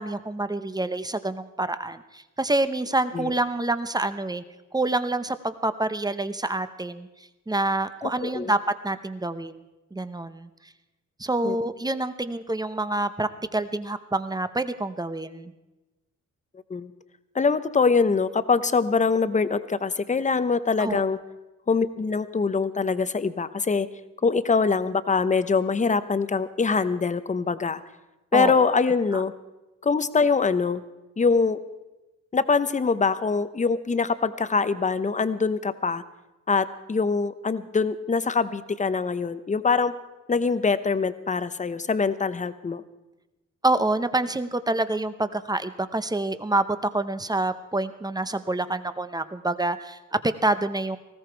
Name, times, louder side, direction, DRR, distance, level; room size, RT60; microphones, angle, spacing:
voice 1, 0.0-4.4 4.7-7.1 7.5-8.6 8.8-9.6 9.9-10.5 11.2-15.5 20.8-21.0 28.3-28.7 43.6-46.6 46.9-51.0, right 2 dB, 15° right, 12 dB, 0.7 m, -27 dB
voice 2, 8.0-8.5 11.4-11.6 16.7-16.9 17.3-21.2 21.7-23.9 24.2-27.8 28.3-29.3 29.8-30.8 31.2-31.6 32.3-36.0 36.5-39.9 40.3-42.8, left 4 dB, 25° left, 13 dB, 0.7 m, -23 dB
19.0 x 16.0 x 4.5 m, 1.1 s
wide cardioid pair, 125°, 30 cm